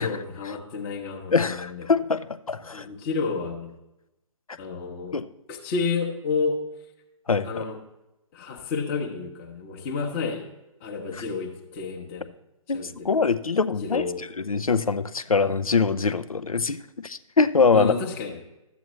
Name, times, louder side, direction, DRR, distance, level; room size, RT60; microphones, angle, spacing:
voice 1, 0.0-1.9 2.7-3.7 4.5-5.2 5.5-6.7 7.4-7.8 8.3-10.4 10.8-12.3 12.7-13.1 13.8-14.3 17.7-18.4, left 4 dB, 25° left, 0 dB, 0.9 m, -30 dB
voice 2, 1.3-2.9 5.1-5.3 7.3-7.6 11.2-11.3 12.7-14.1 14.4-17.9, left 4 dB, 80° left, 14 dB, 0.5 m, -23 dB
12.5 x 8.0 x 3.0 m, 0.93 s
figure-of-eight pair, 135°, 18 cm